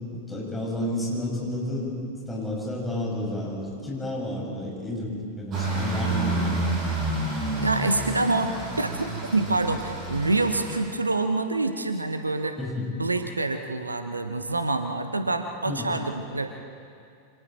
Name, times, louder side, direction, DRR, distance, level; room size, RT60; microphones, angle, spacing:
voice 1, 0.1-1.9 2.3-6.6 12.6-12.9 15.6-15.9, left 1 dB, 5° left, -3 dB, 6.6 m, -31 dB
sound 1, 5.5-10.8, right 2 dB, 35° right, 6.7 m, -29 dB
voice 2, 7.6-12.6 13.0-16.5, right 2 dB, 80° right, 8 dB, 1.1 m, -26 dB
28.0 x 26.0 x 4.5 m, 2.4 s
figure-of-eight pair, 90°, 0 cm